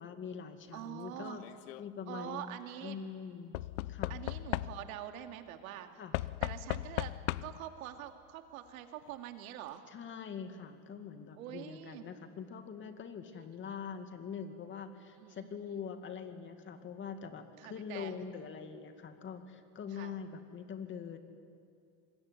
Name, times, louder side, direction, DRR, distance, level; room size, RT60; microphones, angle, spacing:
voice 1, 0.0-1.4 1.8-3.6 3.9-4.1 6.0-6.1 9.9-21.2, left 6 dB, 30° left, 7 dB, 2.3 m, -44 dB
voice 2, 0.7-1.4 2.1-3.0 4.1-6.0 6.4-7.1 7.4-9.8 11.4-12.0 13.3-13.5 13.8-13.9 15.2-15.8 17.6-18.1 19.9-20.1, right 12 dB, 85° right, 6 dB, 2.6 m, -45 dB
Knock / Wood, 1.3-1.8 3.5-5.1 6.1-7.7 8.8-8.9 9.1-9.2, left 18 dB, 70° left, 0.8 m, -37 dB
26.0 x 22.0 x 9.8 m, 2.4 s
supercardioid pair, 140°, 41 cm